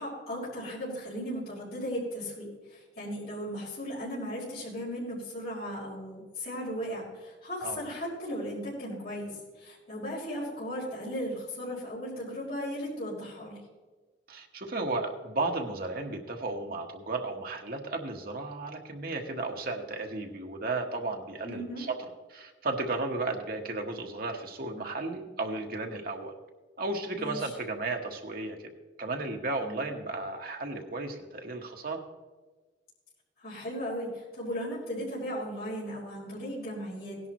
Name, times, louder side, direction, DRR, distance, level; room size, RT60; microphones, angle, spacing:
voice 1, 0.0-13.6 21.4-21.9 27.1-27.5 33.4-37.2, equal, 55° left, -8 dB, 4.8 m, -36 dB
voice 2, 14.3-22.0 22.3-26.3 26.8-28.6 29.0-32.0, right 2 dB, 50° right, 2 dB, 1.4 m, -34 dB
17.5 x 11.0 x 3.1 m, 1.3 s
head